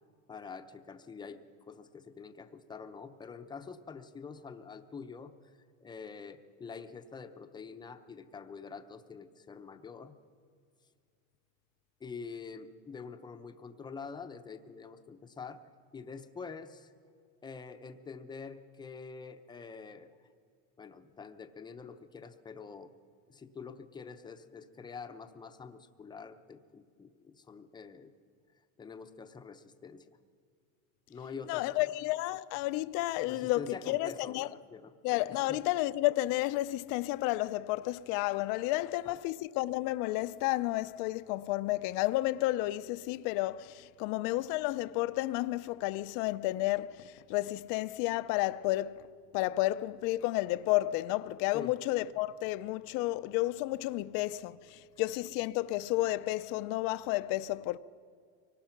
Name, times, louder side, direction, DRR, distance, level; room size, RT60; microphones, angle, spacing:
voice 1, 0.3-1.4 1.7-5.3 5.8-10.1 12.0-15.6 15.9-16.9 17.4-20.1 20.8-22.9 23.3-28.1 28.8-30.2 31.1-31.9 33.2-34.9 35.3-35.6 38.8-39.2 51.5-51.7, left 5 dB, 10° left, 0.7 m, -46 dB
voice 2, 31.5-34.5 35.0-49.0 49.3-57.8, left 17 dB, 55° left, 0.5 m, -31 dB
24.5 x 18.5 x 5.9 m
cardioid pair, 165°, 37 cm